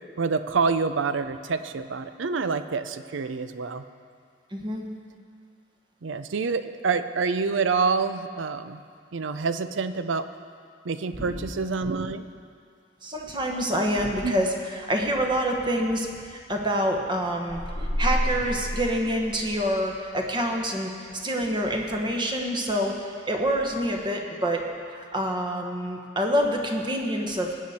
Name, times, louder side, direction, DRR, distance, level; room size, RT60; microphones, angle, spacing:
voice 1, 0.2-3.8 6.0-8.8 9.1-10.3 10.8-12.3 14.2-14.3, right 4 dB, 85° right, 11 dB, 0.5 m, -27 dB
voice 2, 4.5-4.8 11.2-11.4 13.0-17.6 18.0-24.6 25.0-27.5, equal, 25° right, 2 dB, 1.1 m, -27 dB
sound 1, 17.5-19.9, left 1 dB, 35° left, 1.1 m, -29 dB
20.0 x 8.3 x 4.3 m, 2.3 s
head